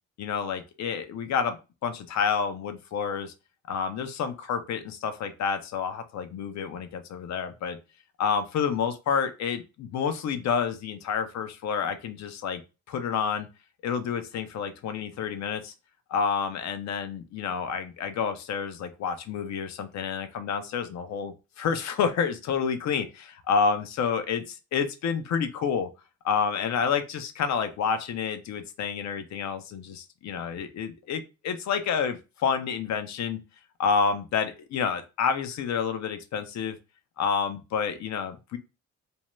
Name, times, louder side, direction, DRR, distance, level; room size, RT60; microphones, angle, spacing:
voice 1, 0.2-3.3 3.7-7.8 8.2-12.6 12.9-13.5 13.8-15.7 16.1-25.9 26.2-33.4 33.8-36.8 37.2-38.6, left 6 dB, 65° left, 9 dB, 0.6 m, -29 dB
2.6 x 2.2 x 3.0 m, 0.29 s
cardioid pair, 90°, 30 cm